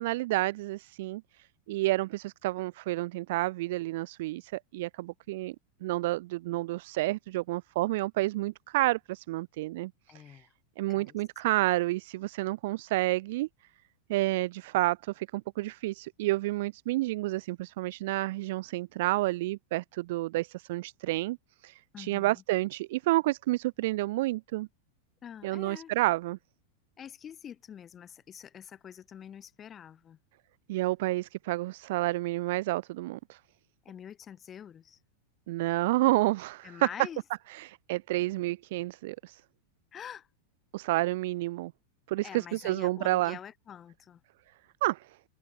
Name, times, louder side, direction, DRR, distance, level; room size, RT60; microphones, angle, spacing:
voice 1, 0.0-5.6 5.8-10.4 10.8-13.5 14.1-21.4 21.6-24.7 25.4-26.4 30.7-33.4 35.5-36.9 37.5-39.4 40.7-41.7 42.1-43.4 44.8-45.1, right 19 dB, 50° right, 0.3 m, -30 dB
voice 2, 10.1-10.5 10.9-11.2 21.9-22.4 25.2-25.9 27.0-30.2 33.8-35.0 36.6-37.2 39.9-40.3 42.2-44.2, left 9 dB, 25° left, 1.5 m, -46 dB
figure-of-eight pair, 90°, 0 cm